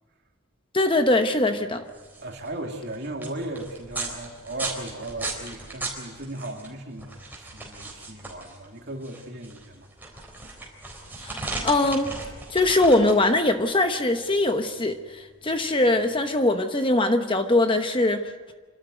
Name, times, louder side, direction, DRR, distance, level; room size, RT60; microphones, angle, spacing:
voice 1, 0.7-1.8 11.2-12.1 12.5-18.3, left 2 dB, 25° left, 7 dB, 0.9 m, -22 dB
sound 1, 1.8-16.3, right 2 dB, 10° right, 4.0 m, -37 dB
voice 2, 2.2-9.9, right 1 dB, 50° right, 1 dB, 2.8 m, -36 dB
26.5 x 13.0 x 9.4 m, 1.4 s
head